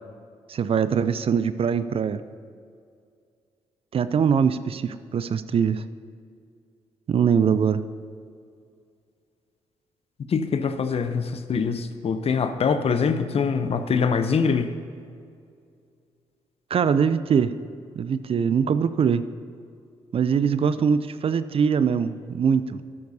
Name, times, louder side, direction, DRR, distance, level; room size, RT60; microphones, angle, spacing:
voice 1, 0.5-2.2 3.9-5.8 7.1-7.8 16.7-17.5 17.9-19.2 20.1-22.8, right 7 dB, 45° right, 14 dB, 0.5 m, -22 dB
voice 2, 10.3-14.7, left 5 dB, 50° left, 9 dB, 0.8 m, -24 dB
12.5 x 10.5 x 2.8 m, 2.3 s
hypercardioid pair, 50°, 13 cm